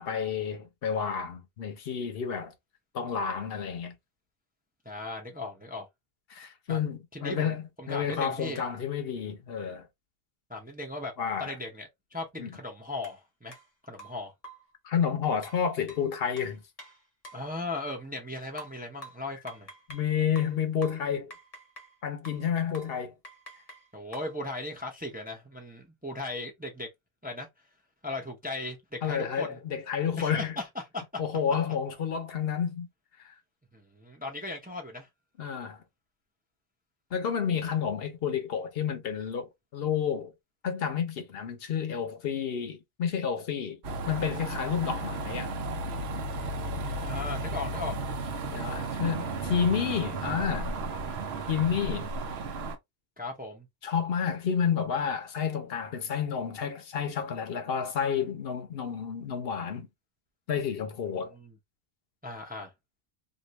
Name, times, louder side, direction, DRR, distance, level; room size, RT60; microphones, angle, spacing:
voice 1, 0.0-2.5 2.9-3.9 6.3-9.9 11.2-11.5 12.4-12.5 14.8-16.6 19.9-21.3 22.0-23.1 29.0-30.6 31.2-32.9 33.2-33.3 35.4-35.8 37.1-40.3 40.6-43.8 44.1-45.5 48.5-50.7 51.5-52.1 53.8-59.9 60.5-61.3, left 7 dB, 65° left, 0.9 m, -30 dB
voice 2, 4.8-5.9 6.7-6.8 7.1-8.6 10.5-11.1 11.4-13.6 13.8-14.3 17.3-19.7 23.9-26.9 27.2-27.5 28.0-29.6 30.2-30.7 30.9-31.2 33.7-35.1 46.9-48.0 51.8-52.0 53.2-53.7 61.2-61.5 62.2-62.7, left 2 dB, 10° right, 0.5 m, -37 dB
sound 1, 13.0-13.2 13.5-13.6 14.0-14.7 15.4-17.5 18.6-20.1 20.3-22.0 22.2-22.5 22.7-23.0 23.2-24.4, right 1 dB, 40° left, 0.8 m, -48 dB
sound 2, 43.8-52.8, right 2 dB, 70° right, 0.9 m, -34 dB
2.7 x 2.6 x 3.0 m
omnidirectional pair, 1.1 m